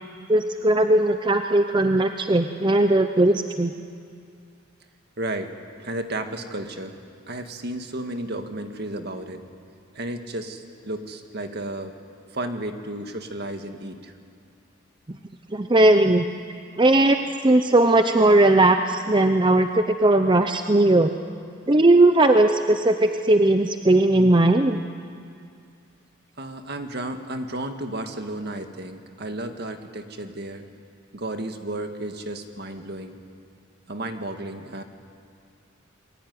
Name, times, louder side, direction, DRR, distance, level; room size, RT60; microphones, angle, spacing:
voice 1, 0.3-3.7 15.5-16.2 16.8-21.1 21.7-24.8, right 2 dB, 25° right, 7 dB, 0.7 m, -18 dB
voice 2, 5.2-5.5 5.8-7.0 7.3-9.4 9.9-12.0 12.3-14.1 26.4-30.6 31.1-33.2 33.9-34.8, right 1 dB, 55° right, 6 dB, 1.8 m, -33 dB
28.0 x 21.5 x 9.5 m, 2.4 s
head